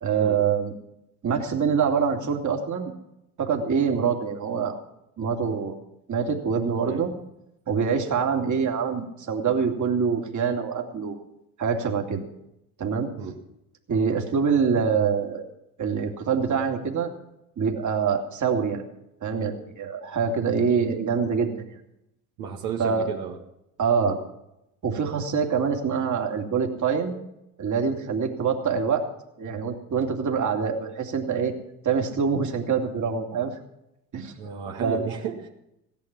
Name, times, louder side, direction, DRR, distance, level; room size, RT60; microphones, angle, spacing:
voice 1, 0.0-0.7 1.2-2.9 3.4-4.8 5.2-5.7 6.1-7.1 7.7-11.2 11.6-12.2 12.8-13.1 13.9-15.4 15.8-17.1 17.6-18.8 19.2-21.7 22.8-23.0 23.8-24.2 24.8-27.2 27.6-29.0 29.4-31.5 31.8-33.5 34.1-34.3 34.8-35.1, right 6 dB, 35° right, 3 dB, 2.6 m, -25 dB
voice 2, 22.4-23.4 24.0-24.2 34.4-35.5, right 6 dB, 65° right, 0 dB, 1.9 m, -33 dB
16.5 x 10.5 x 6.1 m, 0.84 s
hypercardioid pair, 65°, 48 cm